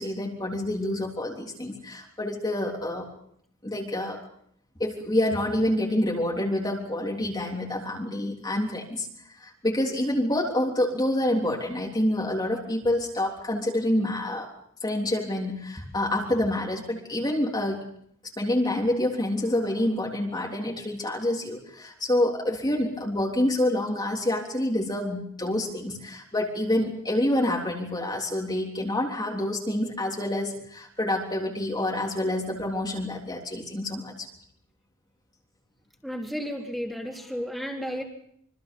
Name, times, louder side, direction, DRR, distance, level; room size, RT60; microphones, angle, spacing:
voice 1, 0.0-3.1 3.6-4.2 4.8-9.1 9.4-14.5 14.8-17.8 18.4-34.3, left 1 dB, 20° left, -1 dB, 3.4 m, -27 dB
voice 2, 36.0-38.0, equal, ahead, -1 dB, 3.8 m, -33 dB
26.5 x 25.0 x 5.4 m, 0.68 s
head